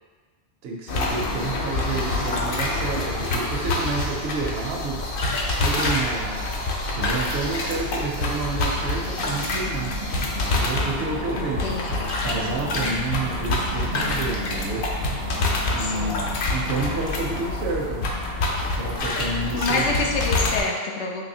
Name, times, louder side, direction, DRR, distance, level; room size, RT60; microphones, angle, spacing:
voice 1, 0.6-5.0 5.6-6.6 7.0-9.9 10.6-14.9 15.7-18.1 18.7-19.9, right 3 dB, 70° right, 0 dB, 0.8 m, -30 dB
sound 1, 0.9-20.6, left 2 dB, 60° left, 0.7 m, -26 dB
sound 2, 2.0-19.0, right 1 dB, 25° right, 0.4 m, -38 dB
voice 2, 11.3-12.2 15.8-16.2 19.5-21.2, left 3 dB, 85° left, 0 dB, 0.9 m, -27 dB
3.9 x 2.8 x 2.7 m, 1.5 s
omnidirectional pair, 1.1 m